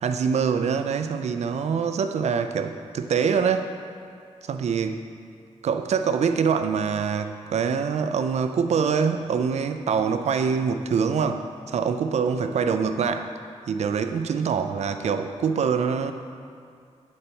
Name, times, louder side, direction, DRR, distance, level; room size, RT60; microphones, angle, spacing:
voice 1, 0.0-3.7 4.4-5.0 5.6-13.3 13.7-16.1, right 6 dB, 65° right, 8 dB, 0.4 m, -24 dB
8.5 x 4.0 x 4.4 m, 2.3 s
wide cardioid pair, 170°, 12 cm